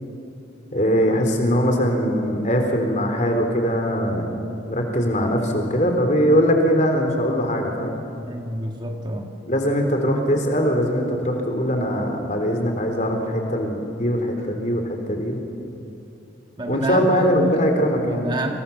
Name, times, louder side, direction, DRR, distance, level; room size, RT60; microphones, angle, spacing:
voice 1, 0.7-7.9 9.4-15.4 16.7-18.3, equal, 40° left, 4 dB, 3.9 m, -21 dB
voice 2, 8.2-9.3 16.6-18.6, right 1 dB, 25° right, 2 dB, 2.0 m, -28 dB
30.0 x 27.0 x 7.3 m, 2.7 s
head